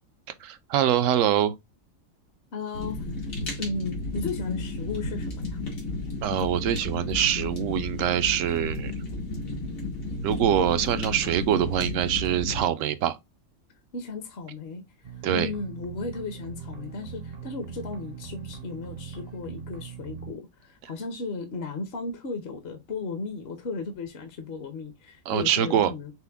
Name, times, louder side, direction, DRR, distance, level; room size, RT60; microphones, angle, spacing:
voice 1, 0.4-1.5 6.2-8.9 10.2-13.2 15.2-15.5 25.3-25.9, right 10 dB, 75° right, 0.9 m, -24 dB
voice 2, 2.5-3.0 3.6-5.6 13.9-26.1, left 3 dB, 55° left, 0.9 m, -35 dB
Fire, 2.7-12.6, left 2 dB, 90° left, 2.0 m, -33 dB
sound 1, 15.0-20.3, right 6 dB, 50° right, 0.5 m, -40 dB
5.9 x 2.1 x 3.4 m
omnidirectional pair, 1.4 m